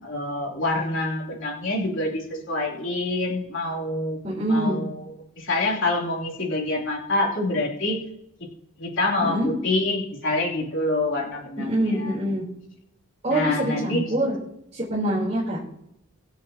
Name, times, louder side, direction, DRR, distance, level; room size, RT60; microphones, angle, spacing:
voice 1, 0.0-4.2 4.5-5.0 5.4-8.0 8.8-12.1 13.3-14.0, left 2 dB, 65° left, -2 dB, 3.5 m, -26 dB
voice 2, 4.2-4.8 9.2-9.5 11.6-12.4 13.2-14.4 14.7-15.6, right 1 dB, 35° right, -6 dB, 3.9 m, -25 dB
24.0 x 8.3 x 3.0 m, 0.81 s
head